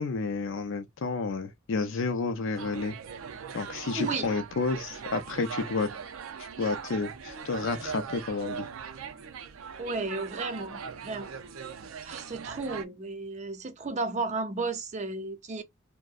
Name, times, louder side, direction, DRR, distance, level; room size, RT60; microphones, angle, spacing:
voice 1, 0.0-3.0 3.5-5.9 6.4-8.7, left 4 dB, 65° left, 0.5 m, -31 dB
sound 1, 2.6-12.9, right 6 dB, 90° right, 0.4 m, -40 dB
voice 2, 4.0-4.3 9.8-11.3 12.0-15.6, right 3 dB, 35° right, 0.5 m, -33 dB
2.6 x 2.1 x 2.3 m
head